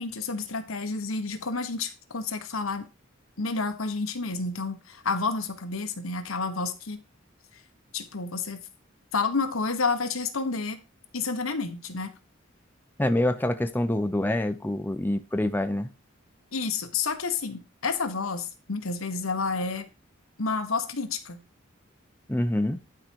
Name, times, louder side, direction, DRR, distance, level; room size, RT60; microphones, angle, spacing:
voice 1, 0.0-2.9 3.4-7.0 7.9-8.6 9.1-10.8 11.1-12.1 16.5-19.9 20.4-21.4, left 4 dB, 90° left, 7 dB, 1.4 m, -30 dB
voice 2, 13.0-15.9 22.3-22.8, left 1 dB, 10° left, 8 dB, 0.7 m, -26 dB
11.5 x 4.9 x 4.6 m, 0.29 s
head